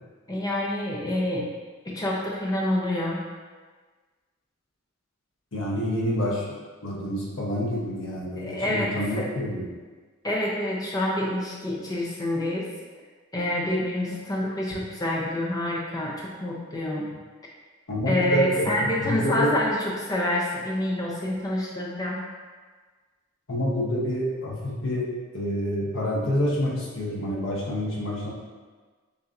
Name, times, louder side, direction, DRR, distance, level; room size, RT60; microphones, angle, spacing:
voice 1, 0.3-1.5 1.9-3.2 8.4-8.9 9.2-9.3 10.2-12.7 13.3-17.1 18.1-22.2, left 1 dB, 20° left, -4 dB, 0.6 m, -27 dB
voice 2, 5.5-6.5 6.8-9.7 17.9-19.5 23.5-25.1 25.3-28.3, left 1 dB, 65° left, -4 dB, 1.0 m, -28 dB
6.8 x 2.7 x 2.5 m, 1.4 s
head